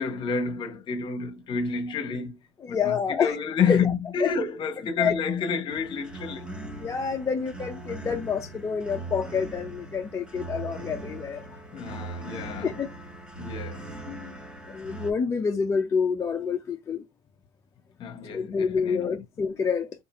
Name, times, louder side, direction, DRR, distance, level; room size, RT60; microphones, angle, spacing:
voice 1, 0.0-2.4 2.7-6.6 11.7-12.7 13.4-14.0 18.0-19.2, left 6 dB, 35° left, 0.9 m, -29 dB
voice 2, 2.6-3.4 3.7-3.9 4.2-4.3 5.0-5.2 6.8-11.5 12.6-12.9 14.1-14.4 14.7-17.0 18.3-19.9, left 6 dB, 20° left, 0.4 m, -28 dB
sound 1, 5.7-15.1, right 3 dB, 5° right, 0.8 m, -40 dB
2.7 x 2.5 x 3.9 m
supercardioid pair, 120°, 14 cm